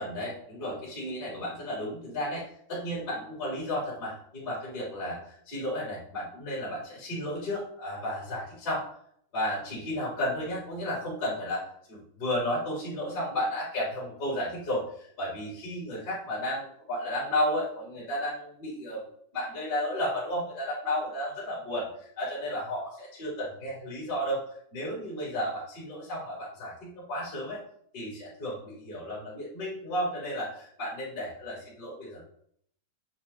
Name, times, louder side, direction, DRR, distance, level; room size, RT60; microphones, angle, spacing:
voice 1, 0.0-8.8 9.3-11.6 11.9-19.0 19.3-24.4 24.7-27.6 27.9-32.2, left 1 dB, 20° left, -7 dB, 4.1 m, -33 dB
9.4 x 5.7 x 4.5 m, 0.64 s
omnidirectional pair, 5.3 m